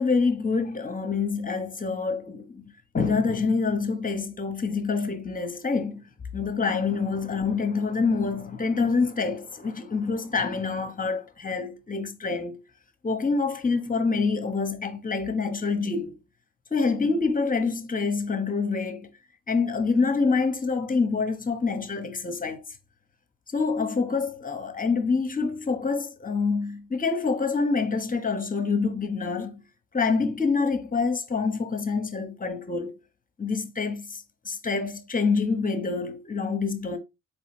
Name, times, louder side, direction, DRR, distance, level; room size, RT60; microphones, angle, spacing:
voice 1, 0.0-6.0 6.3-12.6 13.0-16.2 16.7-19.1 19.5-22.6 23.5-29.6 29.9-32.9 33.4-37.0, left 4 dB, 20° left, 0.9 m, -26 dB
4.0 x 3.1 x 3.2 m
supercardioid pair, 50°, 39 cm